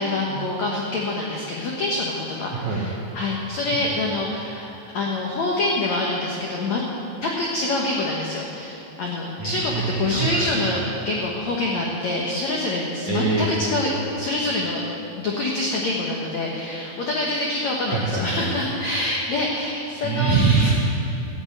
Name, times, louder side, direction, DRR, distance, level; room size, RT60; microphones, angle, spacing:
voice 1, 0.0-6.8 7.2-14.8 15.2-20.4, left 2 dB, 85° left, -2 dB, 1.5 m, -26 dB
voice 2, 2.5-2.8 9.4-10.7 13.1-13.5 17.8-18.5 20.0-20.7, right 4 dB, 70° right, -4 dB, 1.7 m, -23 dB
13.5 x 8.9 x 8.5 m, 2.8 s
omnidirectional pair, 5.2 m